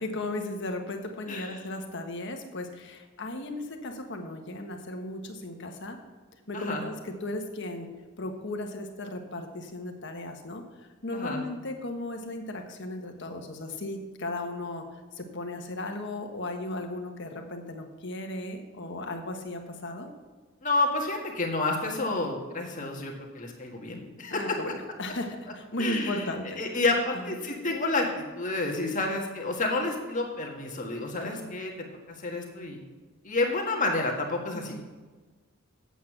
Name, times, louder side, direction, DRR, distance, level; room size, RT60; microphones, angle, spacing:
voice 1, 0.0-6.0 6.5-7.9 8.2-20.1 24.3-26.6 27.2-27.3 31.2-31.5 34.5-34.8, left 1 dB, 60° left, 4 dB, 1.3 m, -36 dB
voice 2, 6.5-6.8 11.1-11.4 20.6-24.6 25.8-26.3 26.6-31.7 32.1-32.8 33.2-34.8, left 2 dB, 40° left, 0 dB, 1.8 m, -29 dB
8.5 x 8.3 x 6.0 m, 1.3 s
head